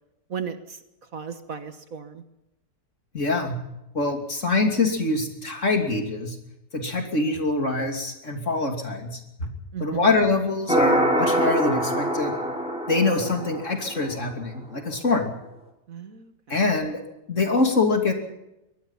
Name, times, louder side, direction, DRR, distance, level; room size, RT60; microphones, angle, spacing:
voice 1, 0.3-0.8 1.1-2.2 9.7-10.1 15.9-16.6, right 7 dB, 55° right, 9 dB, 1.7 m, -35 dB
voice 2, 3.1-3.6 3.9-6.4 6.7-9.5 9.8-12.4 12.9-15.3 16.5-17.0 17.3-18.1, left 3 dB, 45° left, 4 dB, 3.2 m, -24 dB
sound 1, 10.7-14.1, right 1 dB, 5° right, 4.6 m, -24 dB
24.0 x 19.0 x 5.7 m, 0.90 s
omnidirectional pair, 1.8 m